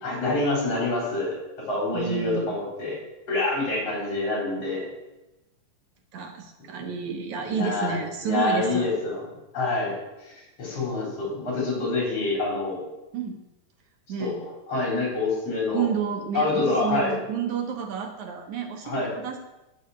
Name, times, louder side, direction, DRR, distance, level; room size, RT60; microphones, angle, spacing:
voice 1, 0.0-1.3 1.7-3.0 3.3-4.9 7.5-8.0 8.2-9.2 9.5-10.0 10.2-12.8 14.2-14.3 14.7-15.9 16.3-17.1 18.8-19.1, left 3 dB, 50° left, -3 dB, 4.8 m, -26 dB
voice 2, 1.9-2.5 6.1-8.9 13.1-13.5 14.1-14.4 15.7-19.4, right 7 dB, 70° right, 3 dB, 2.3 m, -30 dB
11.5 x 5.7 x 8.9 m, 0.99 s
omnidirectional pair, 3.7 m